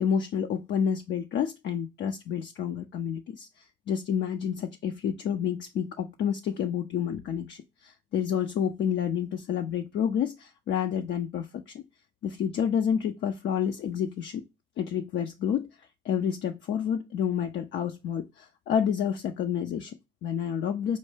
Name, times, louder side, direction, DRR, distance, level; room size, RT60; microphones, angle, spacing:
voice 1, 0.0-11.8 12.2-14.4 14.8-15.7 16.0-21.0, left 8 dB, 65° left, 0.5 m, -29 dB
5.3 x 2.2 x 3.1 m
supercardioid pair, 70°, 20 cm